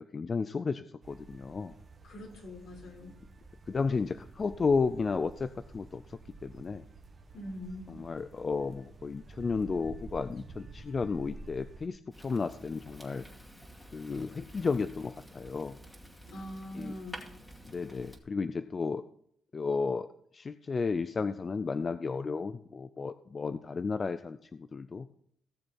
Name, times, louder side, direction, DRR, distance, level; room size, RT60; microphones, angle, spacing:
voice 1, 0.0-1.8 3.7-6.8 8.0-13.2 13.9-15.8 16.8-16.9 17.7-19.0 19.5-20.1 20.3-25.1, left 4 dB, 35° left, 12 dB, 0.5 m, -33 dB
sound 1, 1.0-11.9, right 3 dB, 40° right, 1.5 m, -50 dB
voice 2, 2.0-3.2 7.3-7.9 16.3-17.2, left 1 dB, 70° left, -1 dB, 4.9 m, -43 dB
Fire, 12.1-18.2, equal, 5° left, 2.4 m, -50 dB
17.5 x 6.9 x 4.4 m, 0.67 s
cardioid pair, 90°, 0 cm